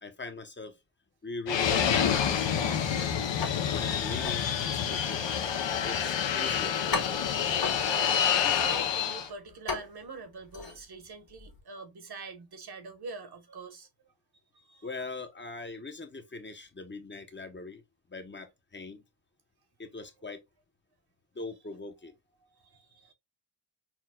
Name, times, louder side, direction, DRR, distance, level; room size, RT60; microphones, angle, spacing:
voice 1, 0.0-0.8 1.2-3.3 3.7-5.2 5.8-7.3 14.8-17.8 18.1-19.0 19.8-20.4 21.3-22.1, left 3 dB, 25° left, 0.7 m, -41 dB
Fixed-wing aircraft airplane, 1.5-9.3, left 8 dB, 85° left, 0.8 m, -28 dB
sound 1, 3.4-11.6, left 3 dB, 55° left, 1.3 m, -40 dB
voice 2, 7.4-14.1 14.5-15.0 22.4-23.1, right 4 dB, 60° right, 1.2 m, -45 dB
6.0 x 2.3 x 2.2 m
wide cardioid pair, 90°, 44 cm